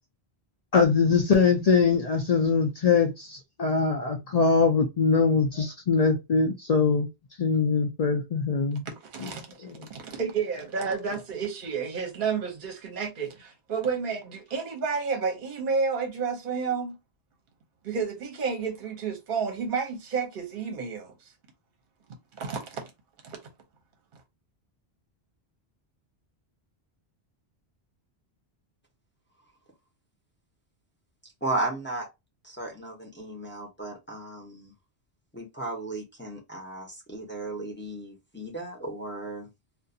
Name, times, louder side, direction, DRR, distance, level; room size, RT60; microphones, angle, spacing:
voice 1, 0.7-7.1 7.4-8.9 9.2-9.3 9.6-9.8, left 5 dB, 55° left, 0.4 m, -23 dB
voice 2, 9.0-17.0 17.8-21.1 22.3-22.9 23.2-23.4, right 5 dB, 55° right, 0.8 m, -31 dB
voice 3, 31.4-32.1 32.4-34.7 35.3-39.5, right 2 dB, 15° left, 0.6 m, -35 dB
2.4 x 2.2 x 2.6 m
omnidirectional pair, 1.1 m